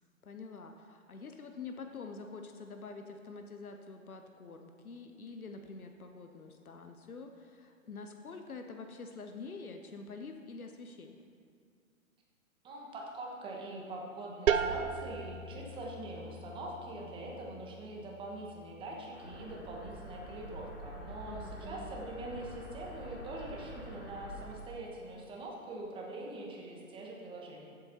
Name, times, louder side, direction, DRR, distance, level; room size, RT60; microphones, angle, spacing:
voice 1, 0.2-11.2 21.2-22.0, left 4 dB, 85° left, 5 dB, 0.8 m, -46 dB
voice 2, 12.6-27.7, right 2 dB, 10° right, -2 dB, 1.2 m, -43 dB
sound 1, 14.5-20.0, right 7 dB, 65° right, 0.7 m, -37 dB
sound 2, 19.1-24.5, equal, 15° left, 0.3 m, -47 dB
14.5 x 7.6 x 2.8 m, 2.2 s
figure-of-eight pair, 125°, 42 cm